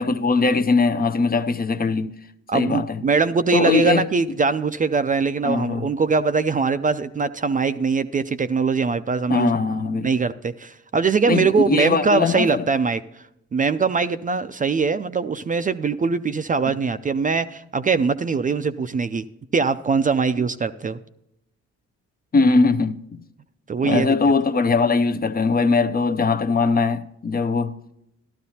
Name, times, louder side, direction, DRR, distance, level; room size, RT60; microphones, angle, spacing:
voice 1, 0.0-2.2 2.5-3.0 3.5-4.0 5.4-5.8 9.3-10.1 11.3-12.6 22.3-23.0 23.8-27.7, left 4 dB, 30° left, 0.6 m, -20 dB
voice 2, 2.5-9.5 10.0-13.2 13.5-19.2 19.5-21.0 23.7-24.1, right 4 dB, 25° right, 0.4 m, -22 dB
13.5 x 12.5 x 2.8 m
cardioid pair, 90°, 30 cm